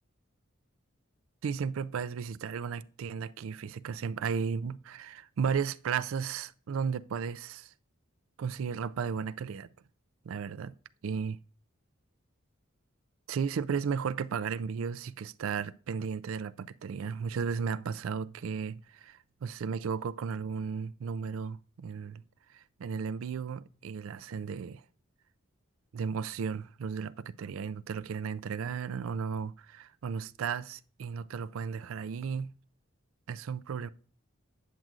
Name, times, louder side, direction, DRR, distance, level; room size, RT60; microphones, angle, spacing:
voice 1, 1.4-7.7 8.4-9.7 10.2-10.7 11.0-11.4 13.3-22.2 22.5-24.8 25.9-32.5 33.3-33.9, right 6 dB, 80° right, 0.4 m, -34 dB
9.2 x 7.3 x 2.5 m
head